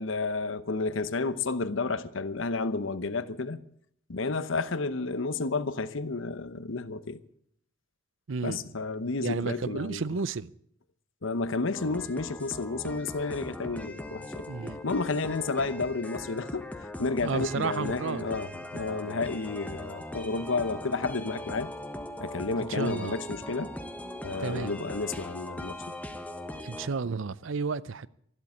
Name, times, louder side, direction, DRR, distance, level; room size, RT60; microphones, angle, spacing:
voice 1, 0.0-3.6 4.1-7.2 8.4-10.0 11.2-14.4 14.8-16.7 17.0-21.7 22.2-23.7 24.2-25.8, left 3 dB, 75° left, 0.9 m, -31 dB
voice 2, 8.3-8.6 9.2-10.5 14.5-14.8 17.2-18.2 22.6-23.2 24.4-24.7 26.6-28.1, right 4 dB, 70° right, 0.6 m, -32 dB
sound 1, 11.7-26.9, left 1 dB, 5° left, 1.1 m, -40 dB
13.5 x 12.0 x 8.4 m
head